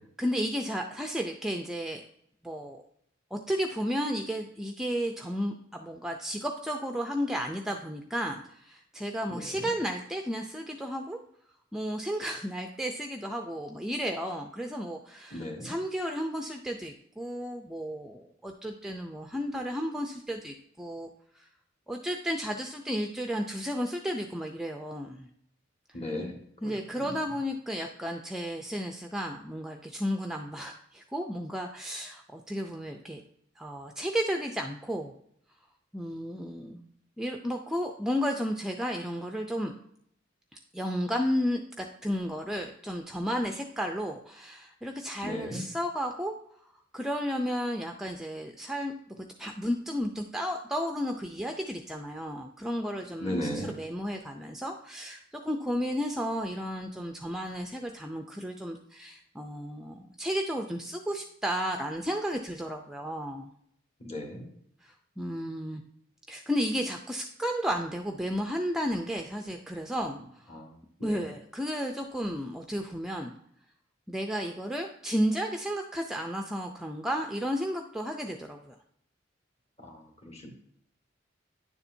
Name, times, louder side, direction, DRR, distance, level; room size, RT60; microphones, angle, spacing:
voice 1, 0.2-2.0 2.4-2.8 3.3-11.2 11.7-21.1 21.4-21.5 21.9-25.3 25.9-26.3 26.6-33.2 33.6-35.1 35.9-36.8 37.2-39.8 40.7-46.4 46.9-63.5 64.8-65.8 66.3-70.5 71.0-73.3 74.1-78.8, equal, 5° right, 3 dB, 0.4 m, -33 dB
voice 2, 15.3-15.7 25.9-26.3 26.6-26.7 27.0-27.1 45.2-45.6 53.2-53.7 64.0-64.4 70.5-70.6 71.1-71.2 79.8-80.0 80.2-80.5, left 1 dB, 35° left, 2 dB, 1.7 m, -35 dB
9.8 x 7.0 x 2.6 m, 0.70 s
head